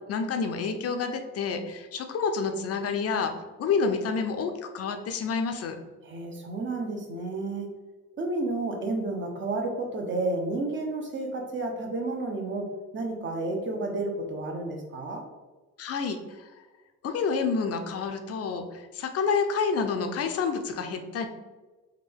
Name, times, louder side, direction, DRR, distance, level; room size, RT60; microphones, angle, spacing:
voice 1, 0.1-3.3 3.6-5.8 15.8-16.5 17.0-21.3, left 5 dB, 55° left, 6 dB, 0.5 m, -28 dB
voice 2, 6.0-7.7 8.2-15.2, right 2 dB, 40° right, 2 dB, 0.8 m, -31 dB
3.6 x 2.3 x 3.4 m, 1.2 s
cardioid pair, 90°, 30 cm